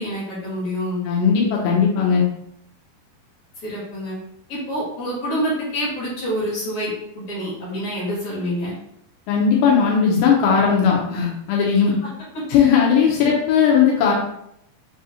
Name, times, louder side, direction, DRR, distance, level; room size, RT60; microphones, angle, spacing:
voice 1, 0.0-1.0 3.6-4.2 4.5-8.7 11.8-12.1 12.5-12.6, equal, 50° left, -8 dB, 2.8 m, -27 dB
voice 2, 1.0-2.2 9.3-11.9 12.5-14.1, left 6 dB, 85° left, -2 dB, 2.9 m, -17 dB
6.7 x 2.7 x 2.8 m, 0.74 s
omnidirectional pair, 4.7 m